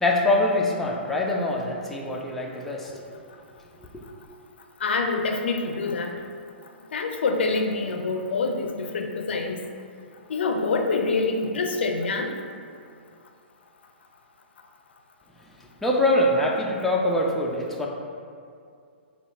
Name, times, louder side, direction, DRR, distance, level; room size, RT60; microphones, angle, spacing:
voice 1, 0.0-3.0 3.8-4.0 15.8-17.9, left 1 dB, 5° left, -3 dB, 0.4 m, -24 dB
voice 2, 4.8-6.1 6.9-9.6 10.3-12.3, left 3 dB, 65° left, 3 dB, 0.5 m, -26 dB
6.9 x 2.3 x 2.9 m, 2.3 s
figure-of-eight pair, 115°, 6 cm